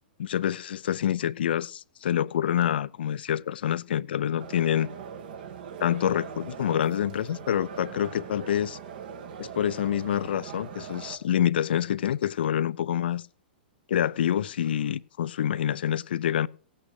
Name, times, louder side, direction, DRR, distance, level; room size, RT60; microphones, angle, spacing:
voice 1, 0.2-4.9 5.8-8.8 9.4-13.2 13.9-16.5, left 10 dB, 75° left, 0.5 m, -27 dB
sound 1, 4.4-11.2, right 7 dB, 65° right, 1.8 m, -41 dB
17.0 x 8.8 x 4.7 m
hypercardioid pair, 125°, 6 cm